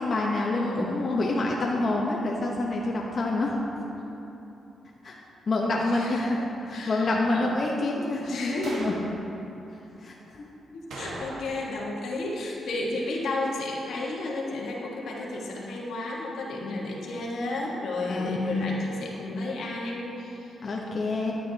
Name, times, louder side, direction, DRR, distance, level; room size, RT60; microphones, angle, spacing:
voice 1, 0.0-3.8 5.0-5.1 5.5-6.4 6.7-8.9 10.0-10.4 18.1-18.8 20.6-21.3, left 2 dB, 50° left, -2 dB, 0.9 m, -27 dB
voice 2, 0.5-0.9 5.9-7.5 8.2-8.8 10.7-20.6, left 2 dB, 80° left, -3 dB, 1.5 m, -33 dB
sound 1, 8.6-9.1 10.9-11.8 12.0-12.1 17.1-17.3, right 1 dB, 80° right, 1.4 m, -39 dB
12.5 x 8.1 x 2.9 m, 2.9 s
cardioid pair, 80°, 0 cm